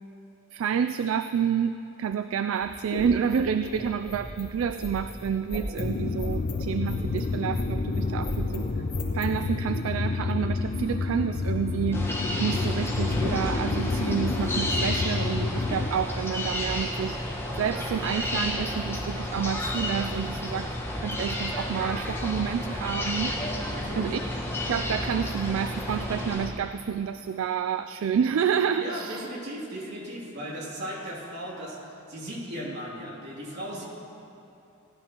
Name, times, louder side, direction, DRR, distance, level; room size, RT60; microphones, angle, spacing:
voice 1, 0.5-8.7 9.1-12.1 12.4-17.2 17.6-20.7 21.0-23.3 24.0-24.2 24.7-29.3, right 7 dB, 75° right, 10 dB, 0.3 m, -29 dB
sound 1, 2.5-9.4, left 1 dB, 85° left, 2.3 m, -38 dB
sound 2, 5.8-15.9, left 3 dB, 45° left, 0.5 m, -29 dB
sound 3, 11.9-26.4, left 1 dB, 10° left, 1.3 m, -31 dB
voice 2, 23.7-24.2 28.8-31.8 32.1-33.8, equal, 60° right, -5 dB, 2.7 m, -37 dB
18.5 x 12.5 x 3.0 m, 2.8 s
head